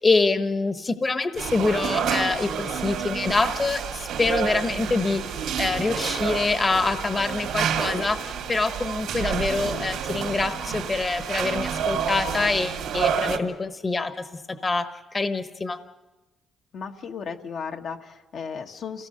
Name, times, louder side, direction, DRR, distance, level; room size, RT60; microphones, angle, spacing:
voice 1, 0.0-14.2 14.6-15.8, left 3 dB, 30° left, 10 dB, 1.2 m, -25 dB
Renovating building Construction area atmos, 1.4-13.4, right 7 dB, 85° right, 2.6 m, -29 dB
voice 2, 16.7-19.1, left 6 dB, 65° left, 3 dB, 1.4 m, -35 dB
28.0 x 17.5 x 6.5 m, 1.1 s
cardioid pair, 90°, 0 cm